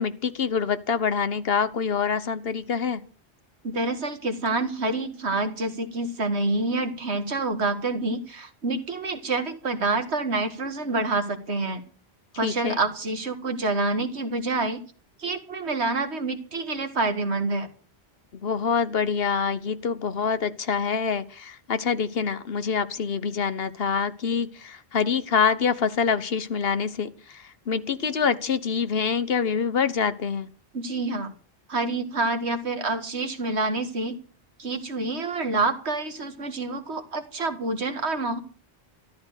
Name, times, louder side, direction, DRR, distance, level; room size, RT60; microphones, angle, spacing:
voice 1, 0.0-3.0 12.4-12.8 18.3-30.5, left 6 dB, 65° left, 13 dB, 1.3 m, -26 dB
voice 2, 3.6-11.8 12.4-14.8 15.2-17.7 30.7-31.3 31.7-34.2 34.6-38.4, right 3 dB, 80° right, 7 dB, 2.2 m, -27 dB
14.0 x 12.5 x 6.5 m, 0.40 s
omnidirectional pair, 1.1 m